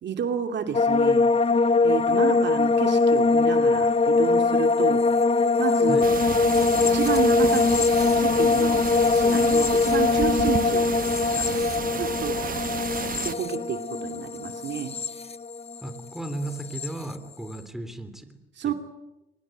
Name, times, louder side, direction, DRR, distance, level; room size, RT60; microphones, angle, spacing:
voice 1, 0.0-1.3 1.8-5.0 5.6-6.0 6.9-7.6 8.2-10.9 11.3-11.4 11.9-12.4 13.2-14.9 18.6-18.7, right 8 dB, 65° right, 6 dB, 2.6 m, -30 dB
sound 1, 0.7-16.0 16.2-16.9, left 3 dB, 30° left, 1.0 m, -22 dB
sound 2, 6.0-13.3, right 7 dB, 45° right, 1.4 m, -32 dB
voice 2, 15.8-18.4 18.6-18.7, right 1 dB, ahead, 9 dB, 3.3 m, -35 dB
24.5 x 21.0 x 9.2 m, 1.0 s
cardioid pair, 90°, 20 cm